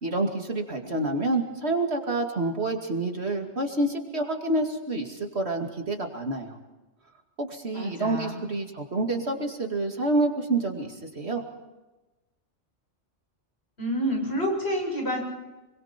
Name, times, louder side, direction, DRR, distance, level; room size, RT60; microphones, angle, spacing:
voice 1, 0.0-6.6 7.4-11.4, right 2 dB, 60° right, 3 dB, 2.7 m, -28 dB
voice 2, 7.7-8.4 13.8-15.2, equal, 60° left, 0 dB, 7.7 m, -28 dB
26.5 x 23.5 x 4.5 m, 1.1 s
omnidirectional pair, 1.2 m